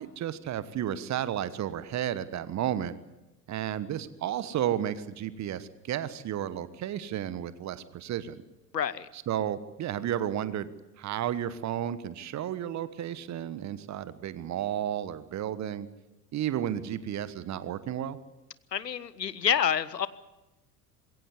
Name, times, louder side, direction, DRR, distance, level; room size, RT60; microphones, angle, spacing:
voice 1, 0.0-3.0 3.5-8.4 9.1-15.9 16.3-18.2, right 10 dB, 35° right, 15 dB, 1.3 m, -32 dB
voice 2, 8.7-9.1 18.7-20.1, left 8 dB, 85° left, 18 dB, 0.9 m, -28 dB
21.5 x 17.0 x 9.7 m, 0.99 s
figure-of-eight pair, 70°, 48 cm